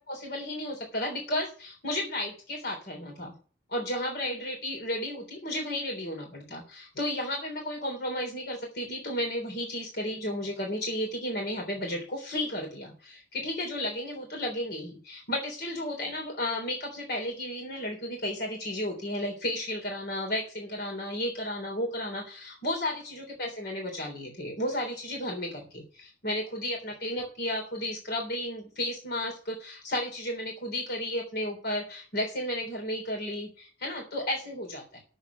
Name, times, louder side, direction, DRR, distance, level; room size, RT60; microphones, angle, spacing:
voice 1, 0.1-3.3 3.7-35.0, left 1 dB, 55° left, 1 dB, 3.5 m, -33 dB
9.0 x 7.0 x 8.2 m, 0.39 s
head